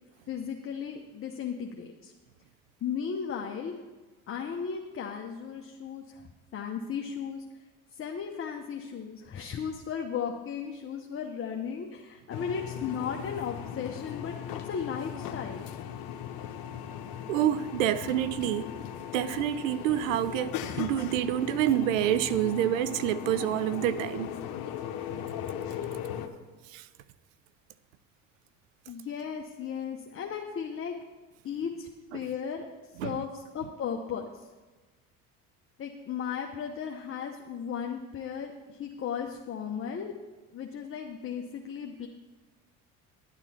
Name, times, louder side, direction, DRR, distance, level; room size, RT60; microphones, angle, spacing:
voice 1, 0.3-2.1 2.8-3.7 4.3-7.4 7.9-15.7 28.9-30.9 31.4-32.7 33.0-34.5 35.8-40.1 40.5-42.1, left 7 dB, 35° left, 0.9 m, -36 dB
sound 1, 12.3-26.3, left 9 dB, 65° left, 1.0 m, -38 dB
voice 2, 17.3-18.7 19.1-24.3 26.7-26.8 33.0-33.1, right 11 dB, 90° right, 0.5 m, -27 dB
11.0 x 8.8 x 4.3 m
hypercardioid pair, 75°, 38 cm